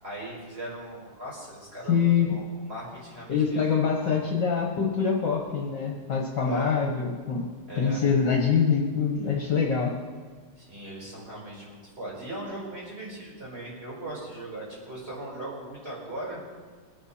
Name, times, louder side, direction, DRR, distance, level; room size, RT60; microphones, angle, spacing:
voice 1, 0.0-3.6 4.0-4.1 6.4-6.7 7.7-8.0 10.6-16.4, right 1 dB, 25° right, -5 dB, 5.2 m, -39 dB
voice 2, 1.9-2.3 3.3-7.5 7.8-9.9, left 6 dB, 60° left, -1 dB, 1.9 m, -24 dB
22.5 x 9.0 x 4.4 m, 1.5 s
omnidirectional pair, 2.3 m